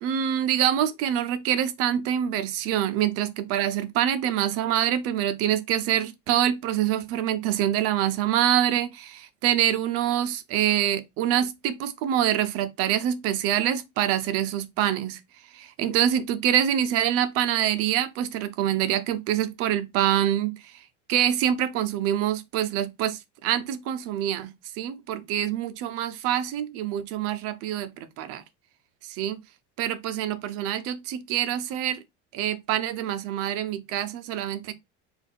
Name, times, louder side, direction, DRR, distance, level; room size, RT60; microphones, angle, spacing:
voice 1, 0.0-15.2 15.5-20.6 21.1-28.4 29.1-29.4 29.8-32.0 32.3-34.7, right 11 dB, 50° right, 0.6 m, -25 dB
3.6 x 2.5 x 3.8 m
cardioid pair, 150°, 30 cm